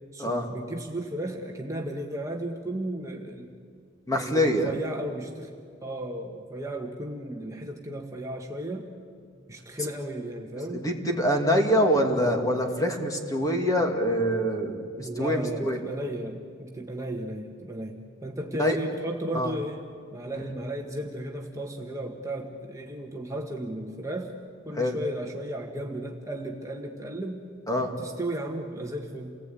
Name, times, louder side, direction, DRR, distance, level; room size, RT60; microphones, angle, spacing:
voice 1, 0.1-3.5 4.1-5.6 5.8-8.9 9.5-10.8 15.0-19.8 20.1-24.4 24.6-27.5 27.8-29.4, right 1 dB, 15° right, 1 dB, 1.4 m, -35 dB
voice 2, 4.1-4.7 10.7-15.8 18.6-18.8 19.3-19.5 20.3-20.5 24.8-25.0 27.7-27.9, equal, 20° left, 2 dB, 2.4 m, -25 dB
29.0 x 18.5 x 8.9 m, 2.2 s
head